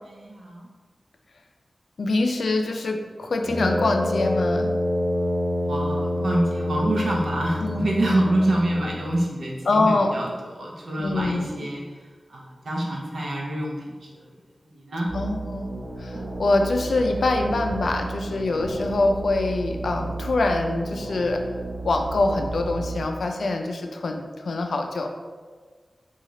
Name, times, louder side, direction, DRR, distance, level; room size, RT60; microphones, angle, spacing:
voice 1, 0.0-0.7 5.6-11.8 12.3-14.3 14.7-15.1, right 1 dB, 80° right, -2 dB, 0.6 m, -26 dB
voice 2, 2.0-4.7 7.6-8.1 9.7-10.1 11.0-11.5 15.1-21.4 21.8-25.1, left 2 dB, 85° left, 4 dB, 0.3 m, -24 dB
Brass instrument, 3.4-9.3, left 1 dB, 20° left, 0.7 m, -27 dB
sound 1, 15.1-23.1, right 2 dB, 40° right, 0.6 m, -33 dB
3.7 x 2.4 x 3.1 m, 1.5 s
wide cardioid pair, 110°, 0 cm